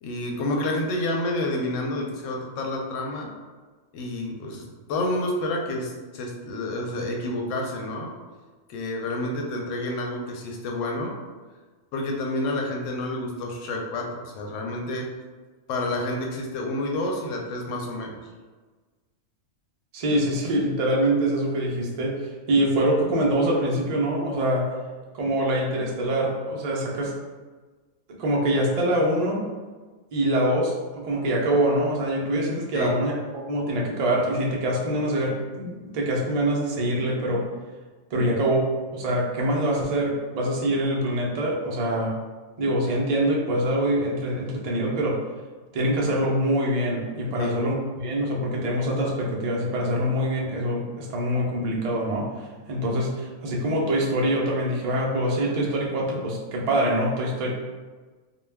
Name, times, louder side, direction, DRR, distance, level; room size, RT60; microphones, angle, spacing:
voice 1, 0.0-3.3 3.9-8.1 8.7-11.1 11.9-15.1 15.7-18.2 32.7-33.0 47.4-47.6, left 1 dB, 70° left, 1 dB, 0.9 m, -29 dB
voice 2, 19.9-22.2 22.5-24.7 25.1-27.1 28.2-29.4 30.1-33.1 33.5-37.4 38.1-42.1 42.6-45.2 45.7-52.3 52.7-57.5, right 1 dB, 70° right, -3 dB, 0.3 m, -24 dB
2.2 x 2.2 x 3.3 m, 1.3 s
omnidirectional pair, 1.4 m